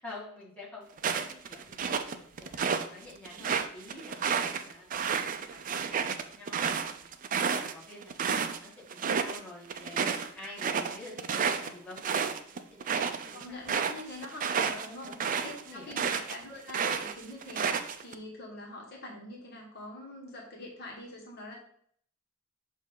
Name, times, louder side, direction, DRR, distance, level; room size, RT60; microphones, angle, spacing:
voice 1, 0.0-2.6 2.9-7.1 7.5-13.6 14.6-16.1, left 2 dB, 5° left, -6 dB, 1.5 m, -49 dB
sound 1, 1.0-2.9 3.3-8.6 8.9-9.4 9.7-16.4 16.7-18.1, right 6 dB, 40° right, 0.4 m, -31 dB
voice 2, 5.3-5.6 13.3-15.1 15.7-21.6, left 1 dB, 50° left, -2 dB, 1.4 m, -44 dB
6.5 x 2.7 x 5.4 m, 0.63 s
head